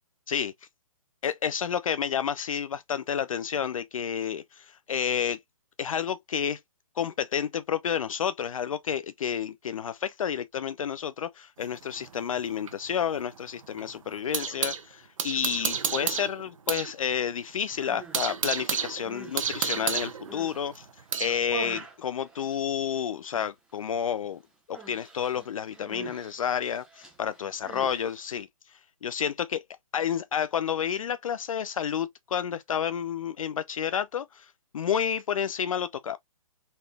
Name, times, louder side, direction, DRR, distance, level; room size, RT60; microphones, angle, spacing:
voice 1, 1.2-5.4 5.8-6.6 7.0-20.9 21.2-24.4 24.7-28.5 29.0-29.6 29.9-36.2, left 8 dB, 70° left, 0.5 m, -30 dB
sound 1, 11.6-14.8 15.2-16.9 17.2-17.3 17.7-21.4, right 7 dB, 65° right, 1.0 m, -31 dB
Human voice, 17.6-18.3 18.8-20.6 21.1-23.1 23.3-23.8 24.0-24.3 24.7-28.4, right 5 dB, 5° right, 0.9 m, -45 dB
4.1 x 3.3 x 2.2 m
hypercardioid pair, 145°, 18 cm